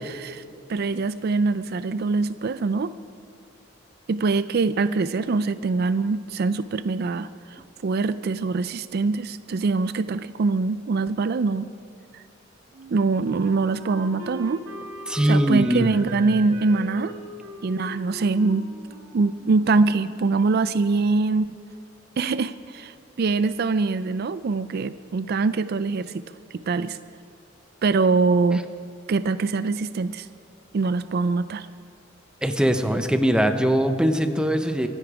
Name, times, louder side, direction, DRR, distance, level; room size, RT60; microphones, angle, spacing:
voice 1, 0.0-0.4 0.7-2.9 4.1-11.7 12.1-12.2 12.9-14.6 15.2-17.1 17.6-18.7 19.1-21.6 22.2-26.3 26.5-27.0 27.8-28.7 29.1-30.3 30.7-31.7, right 3 dB, 55° right, 14 dB, 0.4 m, -23 dB
Wind instrument woodwind instrument, 12.7-20.2, right 1 dB, 90° right, 2.7 m, -40 dB
voice 2, 15.1-15.9 32.4-34.9, equal, 5° right, 7 dB, 0.8 m, -21 dB
24.0 x 10.0 x 4.8 m, 2.6 s
head